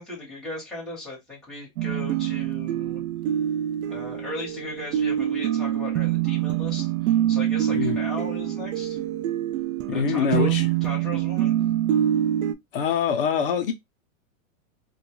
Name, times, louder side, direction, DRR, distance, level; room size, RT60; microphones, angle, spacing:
voice 1, 0.0-3.0 3.9-9.0 9.9-11.6, left 1 dB, ahead, 0.8 m, -37 dB
sound 1, 1.8-12.5, right 11 dB, 80° right, 0.5 m, -25 dB
voice 2, 9.9-10.7 12.7-13.7, left 7 dB, 45° left, 0.5 m, -24 dB
2.2 x 2.2 x 3.0 m
supercardioid pair, 165°, 41 cm